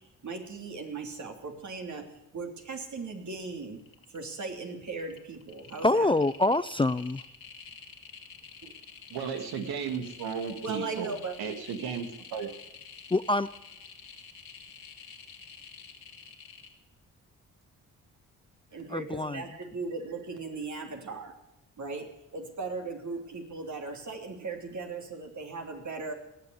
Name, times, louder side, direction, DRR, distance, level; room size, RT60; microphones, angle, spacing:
voice 1, 0.2-2.0 2.3-3.8 4.1-6.1 8.6-8.7 10.6-11.4 18.7-21.3 21.8-22.1 22.3-26.1, right 4 dB, 50° right, 3 dB, 3.1 m, -38 dB
sound 1, 3.3-3.5 3.8-4.4 4.8-16.7, left 6 dB, 70° left, 2.5 m, -48 dB
voice 2, 5.8-7.2 13.1-13.5 18.9-19.4, left 2 dB, 15° left, 16 dB, 0.4 m, -25 dB
voice 3, 9.1-12.5, right 6 dB, 85° right, 7 dB, 2.0 m, -35 dB
18.5 x 6.9 x 9.6 m, 0.91 s
cardioid pair, 70°, 36 cm